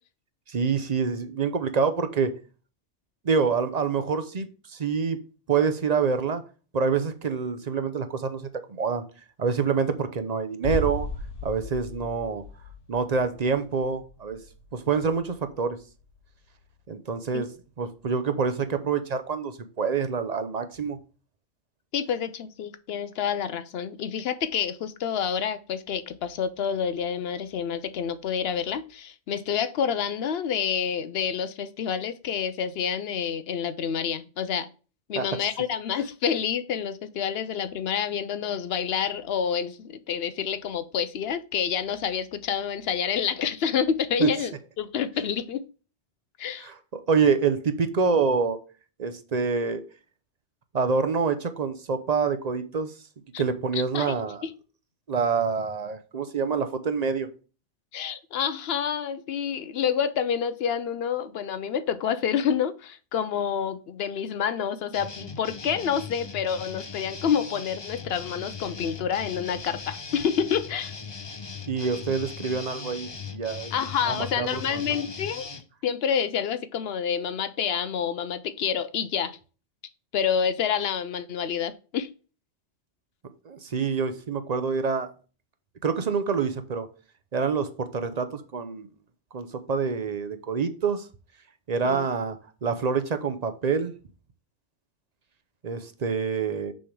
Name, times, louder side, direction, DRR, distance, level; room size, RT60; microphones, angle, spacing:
voice 1, 0.5-2.3 3.2-5.2 5.5-6.4 6.7-8.4 8.7-9.0 9.4-11.1 11.4-12.4 12.9-14.4 14.7-15.8 16.9-17.5 17.8-21.0 35.2-35.3 44.2-44.3 46.6-48.6 49.0-49.8 50.7-52.9 53.4-54.4 55.1-57.3 71.7-73.7 74.1-75.0 83.4-85.1 85.8-86.9 87.3-88.9 89.3-91.1 91.7-92.4 92.6-93.9 95.6-96.7, right 5 dB, 45° right, 0.6 m, -26 dB
sound 1, 10.6-16.4 16.6-16.7, left 2 dB, 80° left, 1.2 m, -37 dB
voice 2, 21.9-34.7 35.1-45.6 46.4-46.7 53.3-53.4 53.7-54.1 54.4-54.5 57.9-70.9 73.7-75.5 75.8-79.4 80.1-82.1 91.8-92.1, left 7 dB, 65° left, 0.7 m, -28 dB
sound 2, 64.9-75.6, left 5 dB, 30° left, 0.6 m, -39 dB
6.2 x 3.3 x 6.0 m
omnidirectional pair, 1.2 m